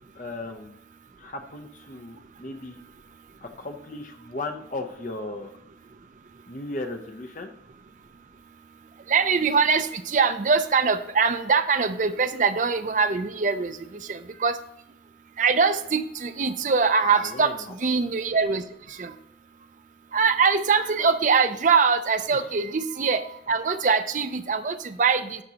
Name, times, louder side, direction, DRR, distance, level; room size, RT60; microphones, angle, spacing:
voice 1, 0.1-0.8 1.2-2.8 3.4-5.6 6.5-7.5 17.0-17.7 22.3-22.5, left 2 dB, 45° left, 4 dB, 0.8 m, -36 dB
voice 2, 9.1-14.6 15.4-19.1 20.1-25.4, right 5 dB, 45° right, 10 dB, 0.5 m, -23 dB
12.5 x 5.2 x 2.9 m, 0.75 s
head